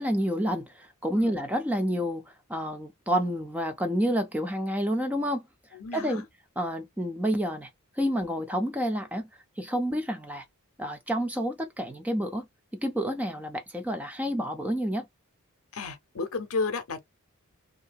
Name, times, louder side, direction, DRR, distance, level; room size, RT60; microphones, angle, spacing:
voice 1, 0.0-5.4 5.9-6.2 6.6-7.7 8.0-9.3 9.6-10.5 10.8-12.5 12.7-15.0, equal, 5° right, 0.4 m, -29 dB
voice 2, 5.7-6.2 15.7-17.0, left 4 dB, 75° left, 0.7 m, -32 dB
2.7 x 2.5 x 2.3 m
head